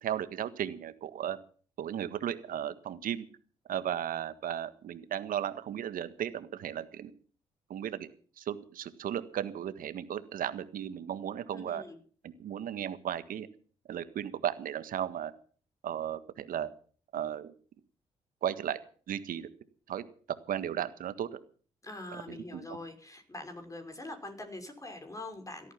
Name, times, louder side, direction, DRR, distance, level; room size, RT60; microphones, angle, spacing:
voice 1, 0.0-1.4 1.8-3.3 3.7-7.1 7.7-8.1 8.4-11.8 12.2-13.5 13.9-15.3 15.8-16.7 17.1-17.5 18.4-18.8 19.1-19.5 19.9-20.0 20.5-21.3 22.3-22.6, right 10 dB, 65° right, 13 dB, 1.6 m, -35 dB
voice 2, 11.5-12.0 21.8-25.7, left 2 dB, 20° left, 5 dB, 5.8 m, -43 dB
17.5 x 13.5 x 5.8 m, 0.43 s
hypercardioid pair, 45°, 15 cm